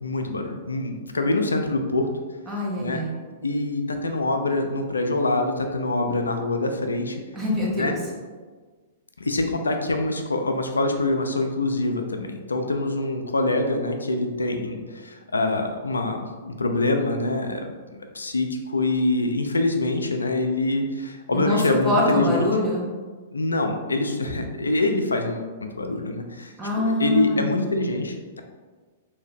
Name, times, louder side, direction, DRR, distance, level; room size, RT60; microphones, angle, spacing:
voice 1, 0.0-2.1 2.8-3.0 3.4-7.2 7.7-7.9 9.2-22.5 23.3-26.5 26.8-28.4, left 2 dB, 85° left, 5 dB, 0.4 m, -25 dB
voice 2, 2.5-3.1 7.3-8.0 21.3-21.6 21.8-22.9 26.6-27.4, left 1 dB, 20° right, -5 dB, 1.0 m, -24 dB
3.5 x 2.7 x 3.5 m, 1.4 s
figure-of-eight pair, 110°, 0 cm